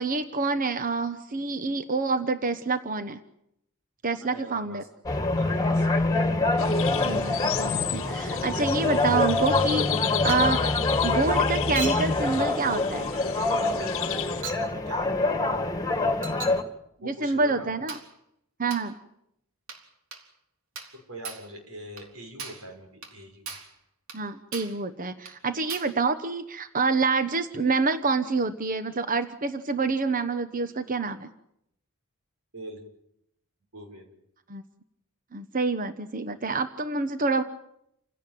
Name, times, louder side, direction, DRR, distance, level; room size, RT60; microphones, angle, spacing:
voice 1, 0.0-3.2 4.0-4.8 7.0-9.9 10.2-10.8 11.0-13.1 17.0-18.0 18.6-18.9 24.1-31.3 34.5-34.6 35.3-37.4, right 4 dB, 40° right, 10 dB, 1.0 m, -27 dB
voice 2, 4.2-4.9 5.4-5.9 13.9-14.1 14.6-15.7 17.0-17.7 20.9-23.5 32.5-32.8 33.7-34.1, right 1 dB, 90° right, 4 dB, 6.1 m, -42 dB
sound 1, 5.1-16.6, left 2 dB, 15° left, 2.0 m, -25 dB
sound 2, 6.6-14.4, left 10 dB, 65° left, 1.0 m, -34 dB
Chink clink, 10.3-10.6 11.8-12.1 13.1-13.3 14.4-14.7 16.2-16.6 17.9-18.1 18.7-18.9 19.7-19.9 20.1-20.3 20.8-21.0 21.2-21.5 22.0-22.1 22.4-22.7 23.0-23.2 23.5-23.7 24.1-24.2 24.5-24.8 25.3-25.4 25.7-26.0, right 4 dB, 65° right, 3.6 m, -38 dB
28.5 x 17.0 x 9.3 m, 0.79 s
head